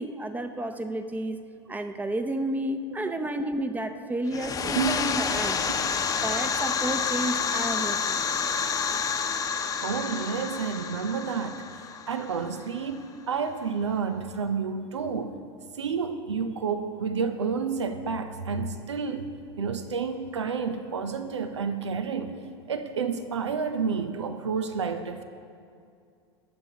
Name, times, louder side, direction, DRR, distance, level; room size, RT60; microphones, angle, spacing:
voice 1, 0.0-5.6 6.2-8.2, right 1 dB, 10° right, 8 dB, 0.8 m, -31 dB
sound 1, 4.3-12.8, left 6 dB, 25° left, 0.9 m, -29 dB
voice 2, 9.8-11.6 12.1-15.4 15.7-22.4 22.7-25.2, right 5 dB, 85° right, 9 dB, 0.7 m, -30 dB
21.5 x 7.3 x 2.9 m, 2.4 s
hypercardioid pair, 90°, 14 cm